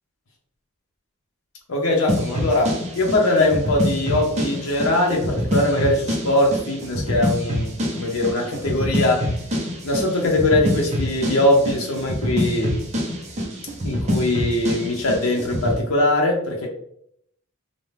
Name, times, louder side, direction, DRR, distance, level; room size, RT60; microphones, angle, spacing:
voice 1, 1.7-9.3 9.8-12.8 13.8-16.7, left 1 dB, 75° left, 0 dB, 0.7 m, -21 dB
sound 1, 2.1-15.8, equal, 30° right, 0.5 m, -26 dB
2.7 x 2.1 x 3.3 m, 0.71 s
head